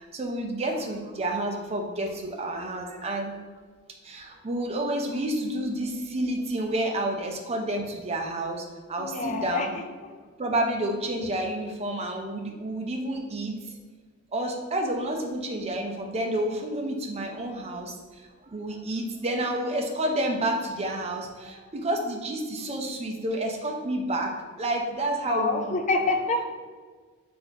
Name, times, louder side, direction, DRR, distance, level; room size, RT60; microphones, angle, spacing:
voice 1, 0.0-3.3 4.0-9.7 10.4-13.8 14.3-18.0 18.5-24.3 24.6-25.7, right 1 dB, 30° right, 2 dB, 0.6 m, -29 dB
voice 2, 9.0-9.7 25.3-26.5, left 3 dB, 35° left, 5 dB, 0.4 m, -26 dB
4.0 x 2.6 x 4.6 m, 1.5 s
head